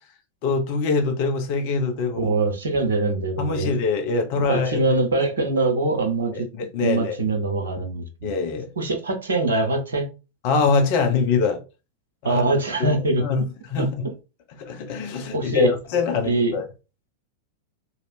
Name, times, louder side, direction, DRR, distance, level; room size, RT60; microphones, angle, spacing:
voice 1, 0.4-2.3 3.4-5.0 6.3-7.2 8.2-8.7 10.4-11.6 12.2-12.4 12.8-12.9 13.2-13.4 13.7-14.1 14.6-16.6, left 4 dB, 45° left, 0.8 m, -23 dB
voice 2, 2.2-3.7 4.4-6.5 6.8-8.3 8.8-10.1 12.2-13.3 13.8-14.1 15.3-15.7 16.2-16.6, right 3 dB, 65° right, 0.8 m, -23 dB
3.3 x 2.8 x 2.5 m
figure-of-eight pair, 90°, 0 cm